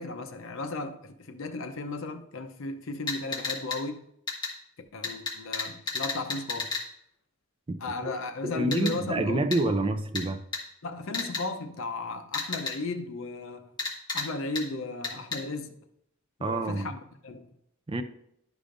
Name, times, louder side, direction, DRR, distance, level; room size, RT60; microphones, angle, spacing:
voice 1, 0.0-4.1 4.9-6.7 7.8-9.8 10.8-13.7 14.1-15.8 16.4-17.5, left 3 dB, 65° left, 0.7 m, -35 dB
sound 1, 3.1-3.8 4.3-4.5 5.0-6.8 8.7-8.9 9.5-9.6 10.1-10.2 10.5-10.6 11.1-11.4 12.3-12.7 13.8-14.3 14.5-14.6 15.0-15.4, left 4 dB, 20° left, 1.6 m, -31 dB
voice 2, 8.4-10.4 16.4-16.9 17.9-18.0, right 2 dB, 25° right, 0.4 m, -28 dB
11.5 x 5.0 x 2.5 m
head